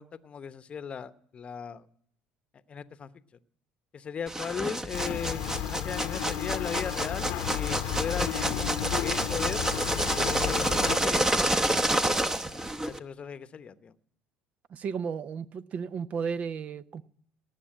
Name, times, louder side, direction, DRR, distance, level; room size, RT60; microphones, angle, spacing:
voice 1, 0.0-1.9 2.7-3.1 3.9-9.6 10.2-11.2 11.9-14.0, left 7 dB, 40° left, 0.9 m, -37 dB
sound 1, 4.3-13.0, right 1 dB, 15° right, 0.9 m, -29 dB
sound 2, 4.9-11.0, left 11 dB, 65° left, 0.9 m, -33 dB
voice 2, 14.7-17.0, right 6 dB, 50° right, 0.7 m, -34 dB
18.5 x 7.1 x 8.8 m
hypercardioid pair, 65°, 3 cm